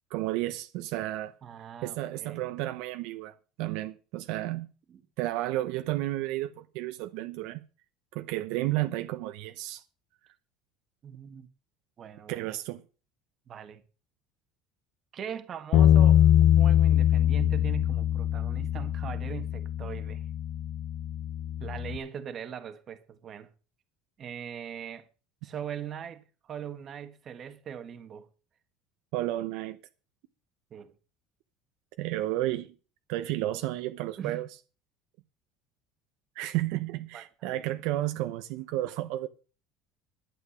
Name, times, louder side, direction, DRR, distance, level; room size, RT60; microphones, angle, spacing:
voice 1, 0.1-1.3 1.8-4.7 5.2-7.6 8.1-9.8 12.3-12.8 29.1-29.8 32.0-32.7 33.1-34.5 36.3-39.3, right 15 dB, 65° right, 0.9 m, -32 dB
voice 2, 1.4-2.4 4.9-5.0 11.0-11.5 12.0-12.4 13.5-13.8 15.1-16.2 16.6-20.2 21.6-23.5 24.2-25.1 25.4-28.3 30.7-30.9 34.2-34.4 37.1-37.6, right 8 dB, 30° right, 1.5 m, -41 dB
Bass guitar, 15.7-22.0, left 11 dB, 60° left, 0.9 m, -23 dB
11.5 x 9.1 x 6.3 m
cardioid pair, 160°, 0 cm